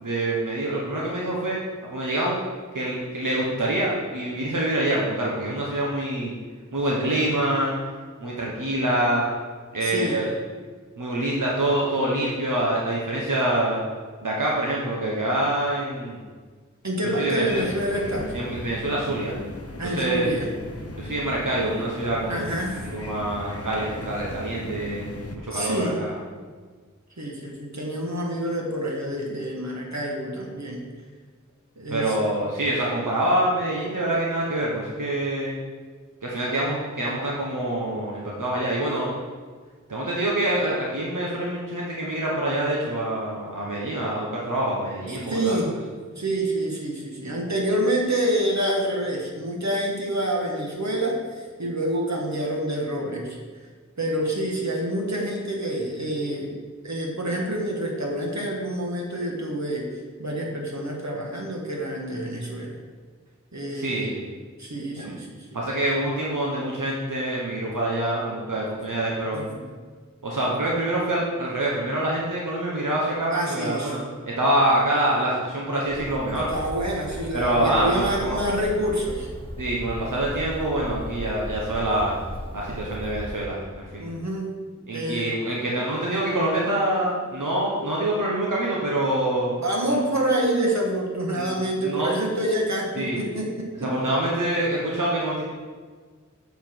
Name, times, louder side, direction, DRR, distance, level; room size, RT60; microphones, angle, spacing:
voice 1, 0.0-1.6 1.9-2.4 2.7-6.3 6.7-7.7 8.2-9.2 9.7-10.3 11.0-13.8 14.2-16.2 17.2-17.6 18.3-19.3 19.8-20.3 21.0-26.1 31.9-35.5 36.2-39.1 39.9-45.7 63.7-64.2 65.0-65.1 65.5-69.4 70.2-74.0 74.3-76.5 77.3-78.4 79.6-82.1 82.5-84.0 84.9-89.5 89.9-90.0 91.3-92.1 93.0-93.3 93.8-95.4, right 1 dB, 85° right, -4 dB, 1.1 m, -26 dB
voice 2, 9.8-10.2 16.8-18.3 19.8-20.5 22.3-22.8 25.5-26.0 27.2-30.8 31.8-32.2 45.1-45.7 46.1-53.4 54.0-56.6 56.8-62.8 63.5-64.1 64.6-65.6 69.3-69.7 73.3-73.9 76.3-79.3 82.6-82.8 84.0-84.5 84.9-85.3 89.6-93.9, right 1 dB, 65° right, -1 dB, 1.5 m, -27 dB
sound 1, 17.5-25.4, left 1 dB, 50° left, 0.8 m, -37 dB
Bird, 75.9-83.5, equal, 15° left, 1.0 m, -37 dB
7.1 x 5.8 x 4.5 m, 1.5 s
wide cardioid pair, 40°, 31 cm